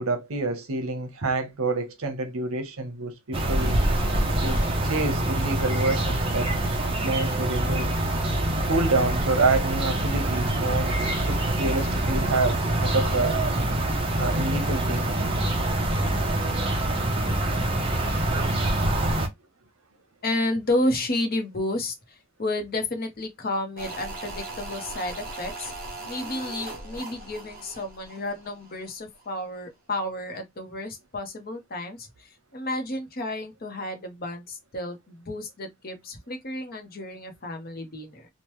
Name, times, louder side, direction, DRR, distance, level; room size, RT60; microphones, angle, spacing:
voice 1, 0.0-3.8 4.4-6.5 7.0-7.9 8.7-11.0 11.3-13.4 14.2-15.1, right 3 dB, 80° right, 0.8 m, -27 dB
sound 1, 3.3-19.3, right 1 dB, 25° right, 0.7 m, -25 dB
voice 2, 20.2-25.7 26.0-38.3, left 1 dB, 45° left, 0.7 m, -31 dB
sound 2, 23.8-28.9 29.2-29.3, right 2 dB, 45° right, 1.0 m, -39 dB
3.0 x 2.1 x 3.0 m
head